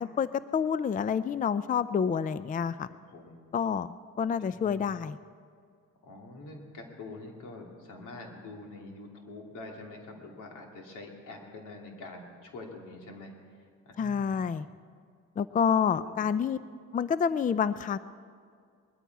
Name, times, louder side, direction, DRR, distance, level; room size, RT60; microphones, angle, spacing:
voice 1, 0.0-2.9 3.5-3.9 4.2-5.2 14.0-14.7 15.4-16.6 16.9-18.0, left 7 dB, 25° left, 15 dB, 0.4 m, -28 dB
voice 2, 2.9-3.4 4.2-4.8 6.0-13.3 13.9-14.4 15.8-16.3, left 2 dB, 85° left, 1 dB, 2.7 m, -46 dB
20.5 x 13.5 x 4.7 m, 2.1 s
cardioid pair, 90°, 30 cm